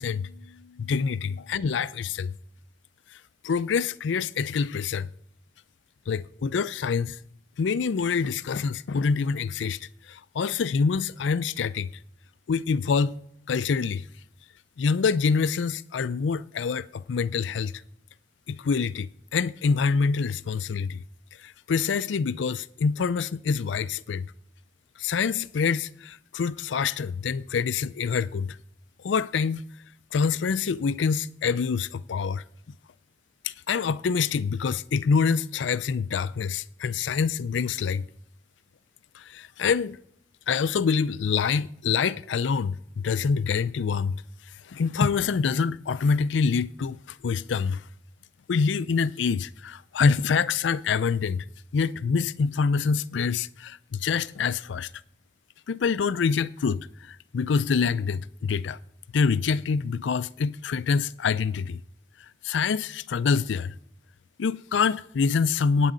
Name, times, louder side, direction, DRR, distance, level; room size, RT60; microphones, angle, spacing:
voice 1, 0.0-2.3 3.4-5.1 6.1-7.2 7.6-9.8 10.1-11.9 12.5-13.2 13.5-14.0 14.8-17.7 18.5-21.0 21.4-24.3 25.0-28.6 29.0-29.6 30.1-32.4 33.4-38.0 39.2-40.0 40.5-44.2 44.7-47.8 48.5-51.4 51.7-54.9 55.7-58.8 59.1-61.8 62.4-63.7 64.4-65.9, left 5 dB, 75° left, 0.4 m, -26 dB
23.5 x 9.1 x 3.9 m
head